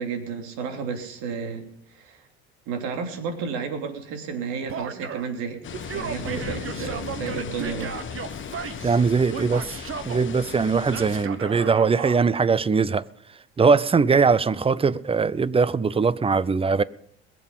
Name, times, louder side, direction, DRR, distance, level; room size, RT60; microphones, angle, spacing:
voice 1, 0.0-2.3 2.7-5.6 5.9-7.9, right 6 dB, 70° right, 3.1 m, -32 dB
Male speech man speaking / Yell, 4.7-5.3 5.7-9.0 9.3-10.3 10.9-12.2, right 7 dB, 45° right, 1.7 m, -35 dB
sound 1, 5.6-11.2, left 7 dB, 40° left, 1.5 m, -36 dB
voice 2, 8.8-9.8 10.1-13.0 13.6-16.8, right 5 dB, 20° right, 0.7 m, -21 dB
21.5 x 7.8 x 5.6 m
hypercardioid pair, 70°, 31 cm